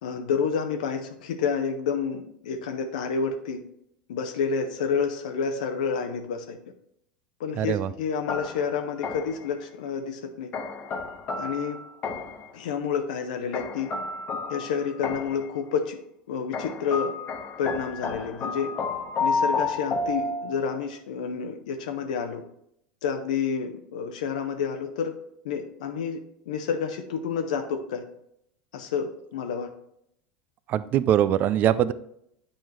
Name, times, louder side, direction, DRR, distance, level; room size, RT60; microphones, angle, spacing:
voice 1, 0.0-3.6 4.1-6.6 7.4-10.5 11.4-11.8 12.5-13.9 14.5-16.0 16.3-17.1 17.6-18.7 19.2-22.4 23.0-25.1 25.4-26.2 26.5-28.0 28.7-29.7, left 6 dB, 75° left, 5 dB, 0.7 m, -29 dB
voice 2, 7.6-7.9 30.7-31.9, right 11 dB, 45° right, 16 dB, 0.4 m, -22 dB
sound 1, 8.3-9.5 10.5-12.5 13.5-15.5 16.5-20.8, left 4 dB, 40° left, 1.1 m, -31 dB
8.7 x 4.5 x 3.1 m, 0.74 s
hypercardioid pair, 90°, 4 cm